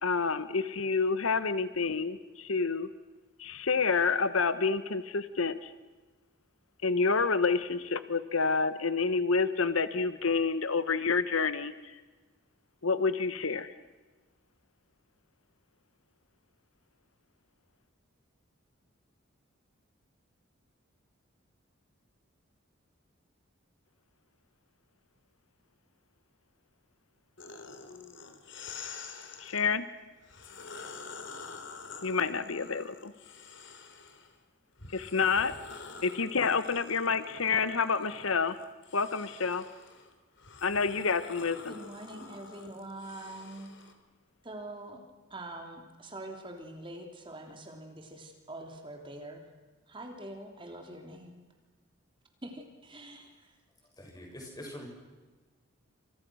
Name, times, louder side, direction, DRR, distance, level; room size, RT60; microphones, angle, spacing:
voice 1, 0.0-2.9 3.4-5.7 6.8-12.0 12.8-13.7 29.4-29.9 32.0-33.1 34.9-35.5 36.0-38.5 38.9-39.6 40.6-41.7, left 4 dB, 85° left, 12 dB, 1.2 m, -28 dB
sound 1, 27.4-29.6 30.2-34.3 34.8-43.9, left 4 dB, 60° left, 3.4 m, -47 dB
voice 2, 41.7-43.7 44.4-45.0 45.3-49.5 49.9-51.4 52.4-53.6, right 1 dB, 25° right, 3 dB, 3.3 m, -44 dB
voice 3, 53.8-54.9, equal, 20° left, 1 dB, 7.5 m, -44 dB
29.0 x 27.5 x 6.3 m, 1.3 s
head